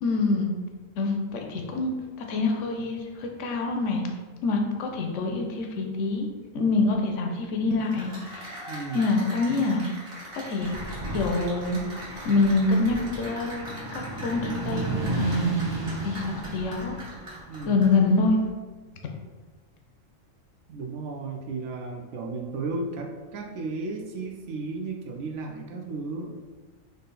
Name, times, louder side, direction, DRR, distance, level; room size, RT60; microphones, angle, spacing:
voice 1, 0.0-0.5 1.0-1.9 2.2-4.0 4.4-6.3 6.5-8.5 8.9-9.8 10.5-10.8 11.1-11.8 12.2-13.6 13.9-15.5 16.0-16.9 17.7-18.4, left 3 dB, 70° left, 2 dB, 0.9 m, -25 dB
Cheering / Applause, 7.7-18.1, equal, 45° right, 1.5 m, -42 dB
voice 2, 8.7-9.2 17.5-17.9 20.7-26.3, right 3 dB, 70° right, 2 dB, 0.8 m, -34 dB
sound 1, 10.6-18.0 18.2-18.5, right 3 dB, 30° right, 0.4 m, -34 dB
3.7 x 2.7 x 3.8 m, 1.4 s
omnidirectional pair, 1.4 m